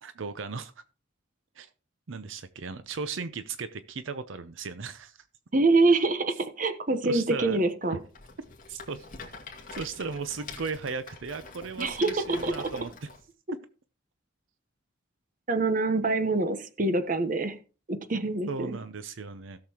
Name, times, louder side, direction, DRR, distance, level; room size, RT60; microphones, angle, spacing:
voice 1, 0.0-0.7 1.6-1.7 2.1-5.2 7.0-7.6 7.9-8.0 8.7-9.1 9.7-13.1 18.5-19.6, right 4 dB, 75° right, 12 dB, 0.6 m, -36 dB
voice 2, 5.5-8.0 11.8-12.7 15.5-17.6 17.9-18.8, right 3 dB, 40° right, 10 dB, 1.0 m, -25 dB
Rattle, 8.1-13.2, left 4 dB, 40° left, 2.1 m, -45 dB
17.0 x 6.7 x 2.9 m, 0.35 s
head